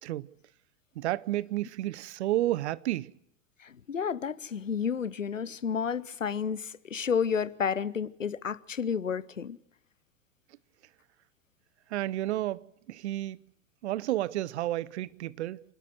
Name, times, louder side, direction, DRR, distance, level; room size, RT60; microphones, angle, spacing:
voice 1, 1.0-3.1 11.9-13.4 13.8-15.6, right 14 dB, 60° right, 0.8 m, -31 dB
voice 2, 3.6-9.6, left 7 dB, 90° left, 0.7 m, -31 dB
27.0 x 12.5 x 7.9 m
figure-of-eight pair, 85°, 37 cm